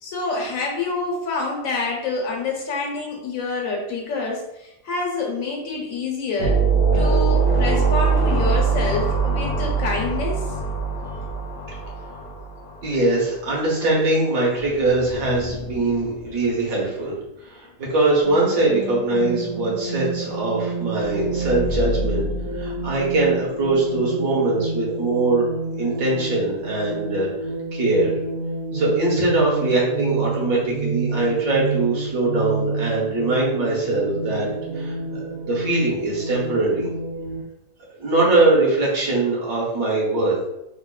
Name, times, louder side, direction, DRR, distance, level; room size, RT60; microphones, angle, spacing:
voice 1, 0.0-6.6 6.9-10.4, left 3 dB, 60° left, -1 dB, 1.2 m, -27 dB
sound 1, 6.4-12.9, right 4 dB, 40° right, 1.0 m, -21 dB
sound 2, 10.6-11.7 11.9-12.0 14.6-18.0 18.4-18.5 21.0-24.3, left 2 dB, 80° left, 1.2 m, -34 dB
voice 2, 12.8-22.2 22.5-25.5 25.8-27.3 27.7-28.1 28.7-34.5 34.7-35.0 35.4-36.9 38.0-40.5, right 2 dB, 60° right, -4 dB, 1.5 m, -22 dB
sound 3, 18.2-37.4, right 4 dB, 85° right, 1.4 m, -29 dB
4.8 x 2.5 x 2.3 m, 0.87 s
omnidirectional pair, 1.7 m